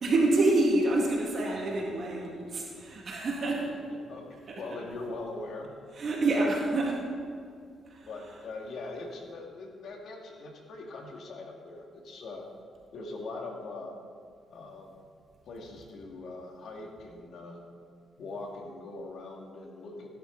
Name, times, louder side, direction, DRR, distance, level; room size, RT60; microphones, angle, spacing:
voice 1, 0.0-3.7 4.5-4.6 6.0-7.0 7.9-8.1, right 2 dB, 50° right, -2 dB, 2.2 m, -27 dB
voice 2, 4.6-5.7 8.1-12.5 12.9-14.0 14.5-15.0 15.4-17.6 18.2-20.1, left 2 dB, 70° left, 1 dB, 2.2 m, -41 dB
16.5 x 11.0 x 4.0 m, 2.2 s
cardioid pair, 105°, 0 cm